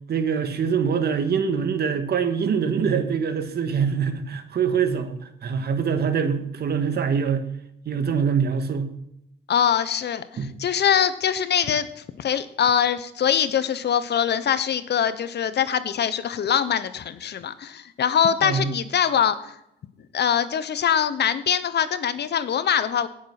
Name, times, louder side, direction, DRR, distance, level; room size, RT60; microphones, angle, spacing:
voice 1, 0.1-5.2 5.4-7.5 7.9-8.9 10.4-10.6 18.4-18.7, right 6 dB, 55° right, 8 dB, 1.8 m, -24 dB
voice 2, 9.5-19.5 20.1-23.1, left 8 dB, 60° left, 13 dB, 1.1 m, -23 dB
18.0 x 7.4 x 6.0 m, 0.79 s
cardioid pair, 90°, 20 cm